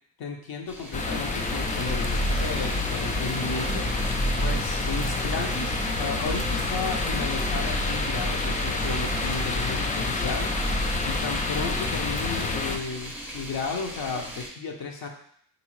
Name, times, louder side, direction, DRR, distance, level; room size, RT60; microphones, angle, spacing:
voice 1, 0.2-15.1, left 5 dB, 60° left, 1 dB, 0.8 m, -34 dB
sound 1, 0.7-14.5, right 1 dB, 5° right, 0.7 m, -39 dB
sound 2, 0.9-12.8, left 2 dB, 20° left, 0.3 m, -27 dB
3.5 x 2.7 x 3.0 m, 0.62 s
cardioid pair, 85°, 42 cm